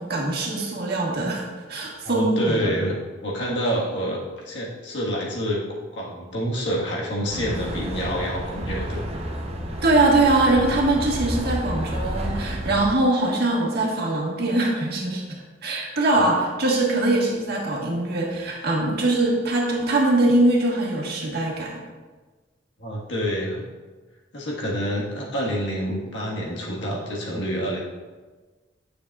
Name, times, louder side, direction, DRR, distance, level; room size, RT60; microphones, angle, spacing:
voice 1, 0.0-2.7 9.8-21.7, right 2 dB, 60° right, -2 dB, 1.5 m, -22 dB
voice 2, 2.0-2.9 3.2-4.2 4.4-5.6 5.9-9.0 22.8-23.6 24.3-27.8, equal, 70° left, -3 dB, 1.5 m, -27 dB
sound 1, 7.3-12.9, equal, 35° right, 0.7 m, -30 dB
9.3 x 6.7 x 2.4 m, 1.3 s
head